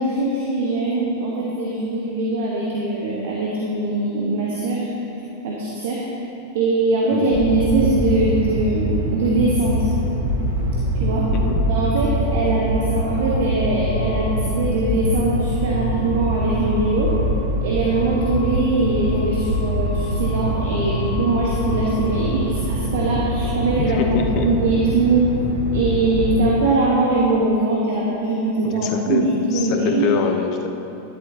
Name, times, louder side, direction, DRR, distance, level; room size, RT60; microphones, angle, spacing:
voice 1, 0.0-4.9 5.4-6.0 6.5-9.9 10.9-11.3 11.7-17.1 17.6-25.3 25.7-30.1, right 2 dB, 55° right, -4 dB, 1.3 m, -21 dB
sound 1, 7.3-26.5, equal, 80° right, 1.9 m, -24 dB
voice 2, 11.3-11.6 23.8-24.5 28.6-30.7, left 6 dB, 40° left, 5 dB, 0.8 m, -25 dB
12.0 x 10.5 x 2.9 m, 3.0 s
figure-of-eight pair, 90°, 0 cm